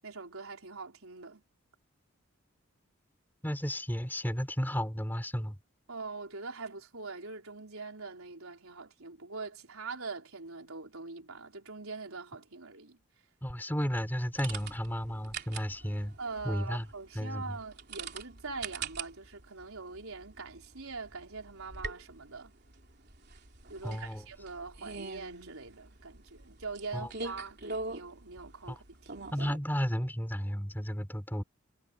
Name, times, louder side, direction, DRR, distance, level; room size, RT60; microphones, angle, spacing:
voice 1, 0.0-1.4 5.9-13.0 16.2-22.5 23.7-29.4, right 4 dB, 90° right, 4.3 m, -43 dB
voice 2, 3.4-5.6 13.4-16.2 16.4-16.9 17.1-17.6 23.8-24.3 26.9-27.1 28.7-28.8 29.3-31.4, equal, 10° left, 4.2 m, -33 dB
sound 1, 14.4-29.6, right 4 dB, 50° right, 3.4 m, -44 dB
head